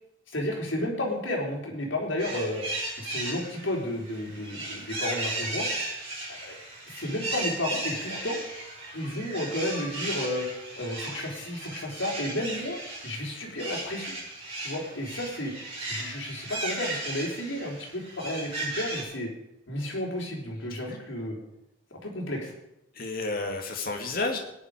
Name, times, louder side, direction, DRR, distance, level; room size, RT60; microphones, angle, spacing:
voice 1, 0.3-2.6 3.0-5.7 6.3-6.5 6.9-8.4 8.9-10.5 10.8-12.8 13.0-14.1 14.6-15.5 15.9-19.3 19.7-21.4 21.9-22.5, left 1 dB, 75° left, -1 dB, 4.0 m, -32 dB
sound 1, 2.2-19.0, right 2 dB, 30° right, 6.5 m, -36 dB
voice 2, 22.9-24.4, left 3 dB, 50° left, 3 dB, 2.2 m, -31 dB
19.0 x 10.5 x 5.1 m, 0.85 s
head